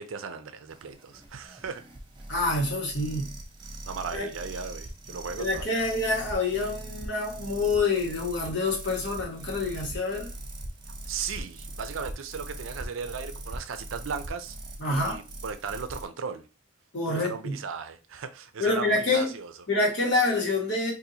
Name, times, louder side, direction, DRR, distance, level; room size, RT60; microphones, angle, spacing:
voice 1, 0.0-1.8 3.8-5.8 11.1-14.6 14.9-16.5 17.1-19.5, right 5 dB, 90° right, 0.5 m, -36 dB
sound 1, 0.7-16.0, right 1 dB, 25° right, 0.6 m, -41 dB
voice 2, 2.3-3.3 4.1-4.3 5.4-10.3 14.8-15.2 16.9-17.6 18.6-19.3 19.7-20.9, left 2 dB, 65° left, 1.3 m, -27 dB
4.0 x 2.6 x 2.8 m
head